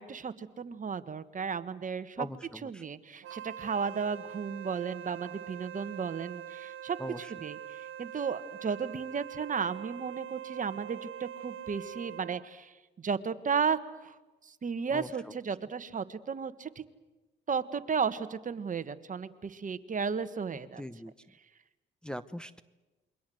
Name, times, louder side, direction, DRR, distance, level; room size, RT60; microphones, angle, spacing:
voice 1, 0.0-2.3 2.6-7.6 8.0-14.1 14.4-16.8 17.5-20.8, right 6 dB, 40° right, 12 dB, 1.6 m, -34 dB
voice 2, 2.2-2.8 7.0-7.2 14.9-15.1 20.8-21.1 22.0-22.6, equal, 5° left, 9 dB, 0.9 m, -40 dB
Wind instrument woodwind instrument, 3.2-12.5, right 10 dB, 85° right, 1.1 m, -44 dB
28.5 x 23.5 x 7.9 m, 1.1 s
cardioid pair, 90°, 20 cm